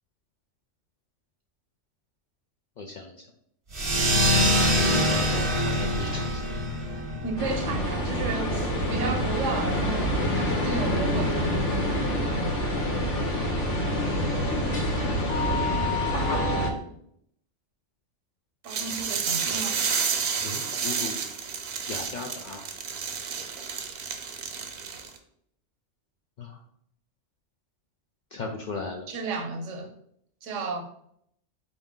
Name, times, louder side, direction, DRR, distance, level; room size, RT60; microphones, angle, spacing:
voice 1, 2.8-3.3 4.8-6.4 16.1-16.7 20.4-21.2 21.9-22.7 26.4-26.6 28.3-29.1, left 3 dB, 60° left, 0 dB, 0.5 m, -36 dB
sound 1, 3.7-8.8, equal, 30° right, 0.6 m, -25 dB
voice 2, 7.2-11.6 18.6-19.8 29.1-29.9 30.4-30.8, right 4 dB, 85° right, 6 dB, 1.0 m, -33 dB
sound 2, 7.4-16.7, equal, 80° left, 1.2 m, -26 dB
sound 3, 18.7-25.2, right 6 dB, 65° right, 0.7 m, -30 dB
4.4 x 2.7 x 3.7 m, 0.70 s
omnidirectional pair, 1.2 m